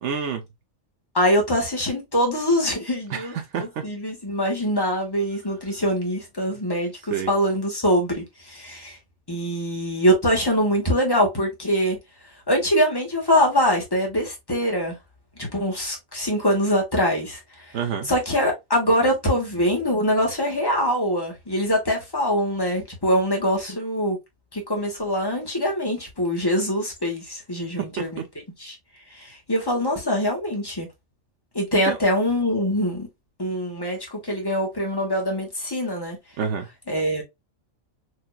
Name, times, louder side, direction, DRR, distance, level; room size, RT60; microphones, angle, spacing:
voice 1, 0.0-0.5 3.1-3.8 7.1-7.3 17.7-18.1 27.8-28.3 31.7-32.0 36.4-36.7, right 7 dB, 80° right, 1.1 m, -28 dB
voice 2, 1.1-3.3 3.6-9.0 9.3-12.0 12.5-15.0 15.4-17.4 18.1-24.2 24.5-28.2 28.6-28.7 29.1-30.9 31.5-33.1 33.4-36.2 36.9-37.2, equal, 20° left, 1.6 m, -23 dB
4.8 x 2.9 x 2.3 m
omnidirectional pair, 1.2 m